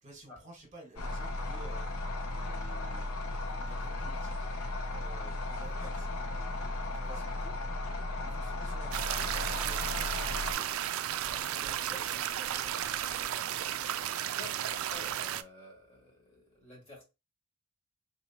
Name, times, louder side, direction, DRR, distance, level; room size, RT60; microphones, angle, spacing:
voice 1, 0.0-4.5 4.9-7.6 8.2-13.4, right 2 dB, 35° right, 1.4 m, -52 dB
sound 1, 1.0-10.5, left 2 dB, 75° left, 0.6 m, -36 dB
sound 2, 8.9-15.4, right 11 dB, 65° right, 0.3 m, -34 dB
voice 2, 14.3-17.0, left 2 dB, 25° left, 1.7 m, -50 dB
3.8 x 3.0 x 2.8 m
head